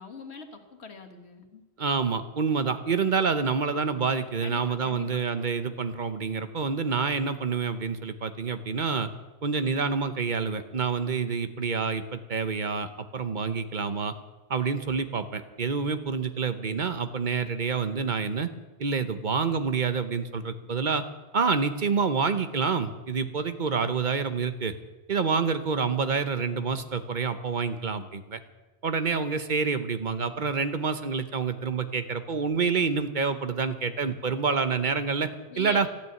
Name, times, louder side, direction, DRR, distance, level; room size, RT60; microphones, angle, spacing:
voice 1, 0.0-1.6 4.4-5.2 35.5-35.9, left 5 dB, 85° left, 5 dB, 1.7 m, -42 dB
voice 2, 1.8-9.1 9.4-14.1 14.5-18.5 18.8-21.0 21.3-24.7 25.1-28.4 28.8-35.3 35.6-35.9, right 5 dB, 50° right, 10 dB, 1.0 m, -27 dB
13.5 x 9.4 x 9.3 m, 1.2 s
omnidirectional pair, 1.1 m